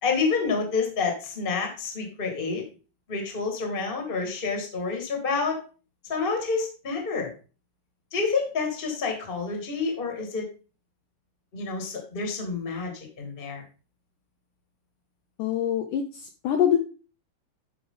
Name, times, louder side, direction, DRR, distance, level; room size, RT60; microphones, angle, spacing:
voice 1, 0.0-2.6 3.1-5.6 6.1-7.3 8.1-10.5 11.5-13.6, left 4 dB, 25° left, 2 dB, 1.1 m, -28 dB
voice 2, 15.4-16.8, left 9 dB, 90° left, 4 dB, 1.8 m, -24 dB
11.5 x 5.0 x 3.9 m, 0.35 s
omnidirectional pair, 4.7 m